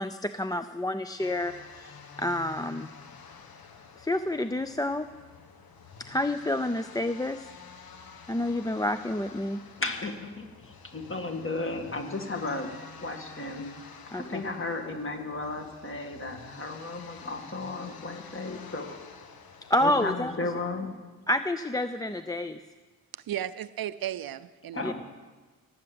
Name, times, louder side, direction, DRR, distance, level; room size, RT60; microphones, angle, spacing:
voice 1, 0.0-1.5 1.8-2.9 4.0-5.1 6.1-7.4 8.3-9.6 14.1-14.4 19.7-20.3 21.3-22.6 24.8-24.9, left 1 dB, 10° left, 10 dB, 0.4 m, -29 dB
sound 1, 1.2-20.1, left 5 dB, 70° left, 1.4 m, -49 dB
voice 2, 9.8-12.7 13.0-13.7 14.1-19.0 19.8-20.9 24.7-24.9, left 3 dB, 35° left, 4 dB, 1.9 m, -34 dB
voice 3, 23.1-24.9, right 11 dB, 70° right, 16 dB, 0.5 m, -35 dB
18.0 x 8.6 x 7.8 m, 1.3 s
wide cardioid pair, 115°, 37 cm